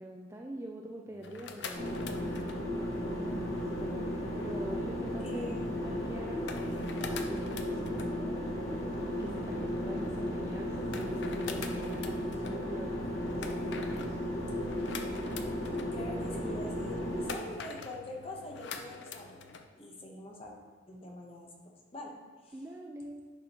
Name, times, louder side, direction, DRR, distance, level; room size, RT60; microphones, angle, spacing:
voice 1, 0.0-2.1 2.7-5.5 5.8-8.5 9.0-13.5 13.9-14.9 22.5-23.2, right 1 dB, 15° right, 1 dB, 0.3 m, -45 dB
sound 1, 1.1-19.6, left 4 dB, 65° left, 0.5 m, -46 dB
sound 2, 1.7-17.4, equal, 85° left, 1.9 m, -35 dB
voice 2, 5.2-5.6 15.6-19.5 19.8-20.5 20.9-21.5 21.9-22.2 22.4-22.6, left 1 dB, 30° left, 0 dB, 1.0 m, -44 dB
10.5 x 5.1 x 2.9 m, 1.4 s
head